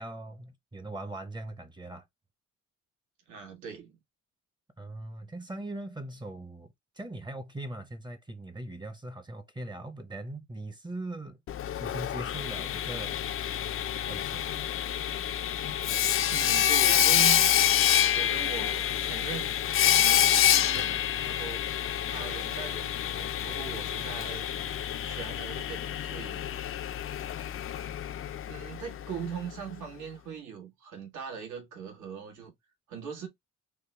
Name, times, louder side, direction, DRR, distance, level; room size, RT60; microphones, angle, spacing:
voice 1, 0.0-2.0 4.8-11.4 11.8-13.2 14.1-14.7, right 1 dB, 15° right, 0.7 m, -40 dB
voice 2, 3.3-4.0 16.3-17.4 18.1-19.6 19.9-21.6 22.0-24.5 25.0-26.4 28.5-32.5 32.9-33.3, right 6 dB, 75° right, 1.4 m, -40 dB
Sawing, 11.5-29.3, left 10 dB, 45° left, 0.4 m, -27 dB
3.4 x 2.1 x 3.1 m
cardioid pair, 90°, 30 cm